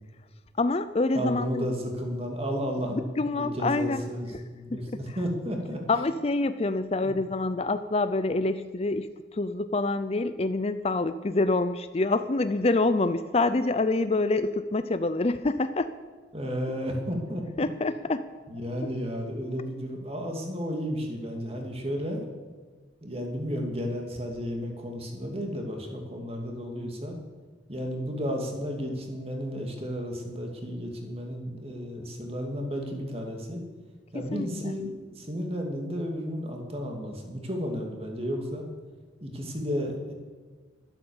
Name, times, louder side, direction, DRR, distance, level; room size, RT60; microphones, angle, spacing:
voice 1, 0.6-1.7 2.9-4.0 4.3-4.4 4.7-4.8 5.9-15.9 17.6-18.3 34.1-34.7, left 2 dB, 35° left, 12 dB, 0.5 m, -26 dB
voice 2, 1.1-5.8 7.0-7.1 16.3-17.4 18.5-22.2 23.0-27.2 27.7-33.6 34.1-38.6 39.2-40.1, equal, 30° right, 2 dB, 2.5 m, -33 dB
13.0 x 12.0 x 7.2 m, 1.4 s
head